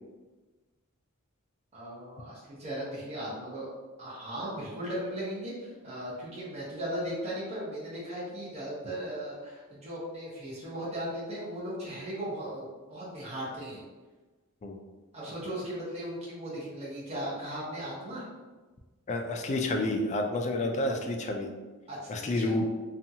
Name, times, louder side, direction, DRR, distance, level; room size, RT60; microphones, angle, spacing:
voice 1, 1.7-3.7 4.0-13.8 15.1-18.2 21.9-22.5, equal, 30° right, -8 dB, 0.9 m, -37 dB
voice 2, 19.1-21.5 22.1-22.6, left 2 dB, 30° left, 3 dB, 0.3 m, -29 dB
2.7 x 2.3 x 2.7 m, 1.3 s
head